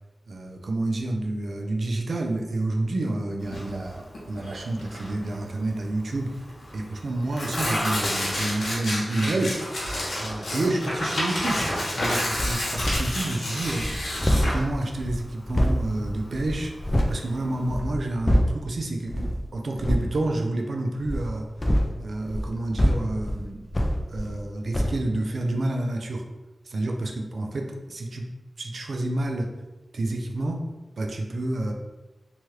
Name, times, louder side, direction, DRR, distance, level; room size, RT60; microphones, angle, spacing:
voice 1, 0.3-6.3 6.7-9.6 10.1-13.9 14.5-21.5 22.0-23.7 24.1-26.2 26.7-28.3 28.6-29.5 29.9-30.6 31.0-31.7, right 2 dB, 70° right, 2 dB, 0.4 m, -29 dB
Tearing, 3.4-17.7, left 1 dB, 80° left, 0.8 m, -30 dB
sound 1, 12.4-13.2 13.6-17.2 17.6-18.7 19.1-19.4 19.7-20.1 21.0-24.5 24.7-25.0, equal, 25° left, 0.3 m, -26 dB
2.9 x 2.3 x 3.1 m, 1.1 s
wide cardioid pair, 90°, 0 cm